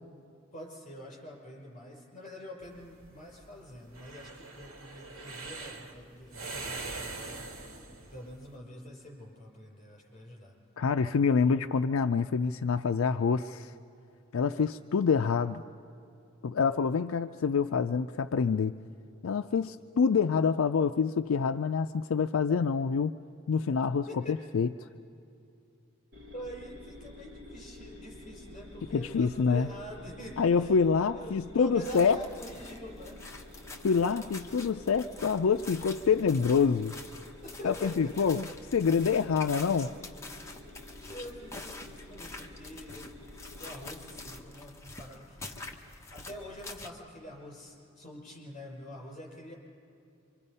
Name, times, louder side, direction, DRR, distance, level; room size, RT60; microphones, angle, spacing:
voice 1, 0.5-10.5 24.1-24.4 26.3-30.8 31.1-33.2 37.4-38.3 41.1-43.2 43.6-49.5, equal, 35° left, -2 dB, 5.9 m, -45 dB
sound 1, 2.6-8.5, right 3 dB, 80° right, 2.5 m, -42 dB
voice 2, 10.8-13.7 14.3-15.6 16.4-18.8 19.2-23.1 23.5-24.7 28.9-29.7 30.4-32.2 33.8-37.0 37.6-39.9, left 5 dB, 75° left, 8 dB, 0.4 m, -26 dB
sound 2, 26.1-44.4, left 1 dB, 50° right, 3.5 m, -50 dB
sound 3, 31.8-46.9, left 2 dB, 15° left, 1.3 m, -46 dB
26.5 x 25.0 x 5.5 m, 2.7 s
head